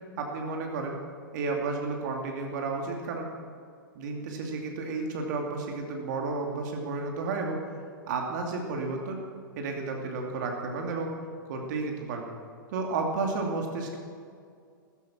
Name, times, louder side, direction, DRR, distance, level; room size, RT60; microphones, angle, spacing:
voice 1, 0.2-1.0 1.3-3.3 3.9-7.6 8.1-9.2 9.6-11.1 11.5-12.2 12.7-14.0, right 3 dB, 55° right, 1 dB, 2.7 m, -32 dB
15.0 x 14.5 x 6.1 m, 2.2 s
figure-of-eight pair, 105°, 12 cm